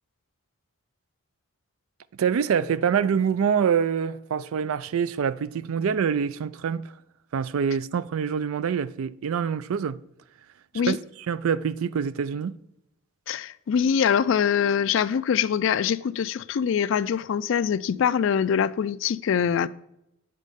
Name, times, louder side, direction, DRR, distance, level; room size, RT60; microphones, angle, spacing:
voice 1, 2.1-7.0 7.3-10.0 10.9-12.6, right 7 dB, 85° right, 0.4 m, -25 dB
voice 2, 13.3-19.7, left 7 dB, 65° left, 0.3 m, -23 dB
8.3 x 4.2 x 5.1 m
head